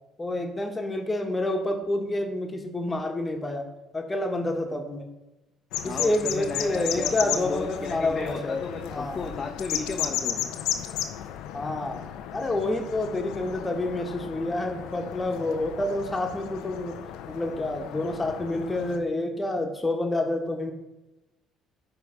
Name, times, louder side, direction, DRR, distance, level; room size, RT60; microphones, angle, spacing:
voice 1, 0.2-3.7 3.9-5.1 5.8-8.6 8.9-9.3 11.5-17.0 17.3-20.7, left 2 dB, 25° left, 4 dB, 1.3 m, -28 dB
sound 1, 5.7-19.0, left 10 dB, 75° left, 0.5 m, -34 dB
voice 2, 5.8-10.5, left 4 dB, 40° left, 2 dB, 0.8 m, -34 dB
9.7 x 3.3 x 5.0 m, 1.0 s
hypercardioid pair, 55°, 0 cm